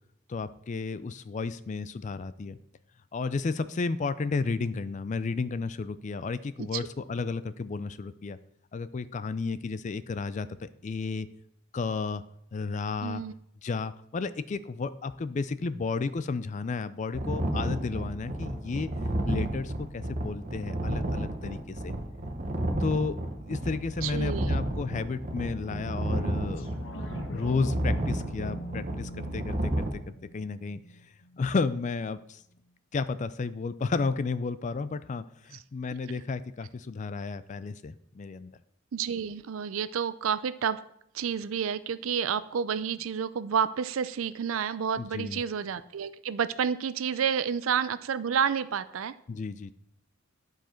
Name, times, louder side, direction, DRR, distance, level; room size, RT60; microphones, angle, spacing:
voice 1, 0.3-2.6 3.1-8.4 8.7-11.3 11.7-12.2 12.5-13.2 13.6-18.9 19.3-21.9 22.8-23.2 23.5-30.8 31.4-32.4 32.9-38.5 45.0-45.4 49.3-49.7, left 4 dB, 35° left, 14 dB, 0.4 m, -32 dB
voice 2, 13.0-13.3 24.0-24.6 38.9-40.8 41.1-49.1, right 7 dB, 85° right, 14 dB, 0.4 m, -30 dB
sound 1, 17.1-29.9, right 1 dB, 40° right, 0.9 m, -31 dB
sound 2, 26.6-31.6 32.0-32.1, equal, 65° left, 0.8 m, -42 dB
10.5 x 4.9 x 4.4 m, 0.74 s
head